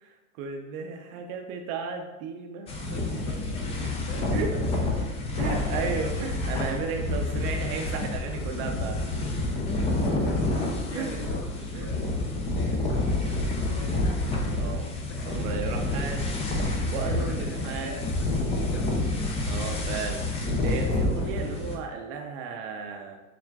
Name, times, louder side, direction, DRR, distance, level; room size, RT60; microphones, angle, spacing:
voice 1, 0.0-3.2 4.3-4.5 5.4-9.4 10.9-11.2 11.7-11.9 14.6-14.9 15.3-16.2 16.9-18.0 19.4-20.3 20.6-23.2, right 5 dB, 50° right, 4 dB, 0.5 m, -34 dB
sound 1, 2.7-21.8, left 2 dB, 15° left, 0.3 m, -28 dB
voice 2, 2.9-5.8 7.2-7.4 9.6-9.8 10.1-13.9 14.9-15.5 15.8-16.2 17.0-19.0, left 1 dB, 40° left, -1 dB, 1.1 m, -44 dB
7.1 x 2.4 x 2.3 m, 1.1 s
hypercardioid pair, 120°, 40 cm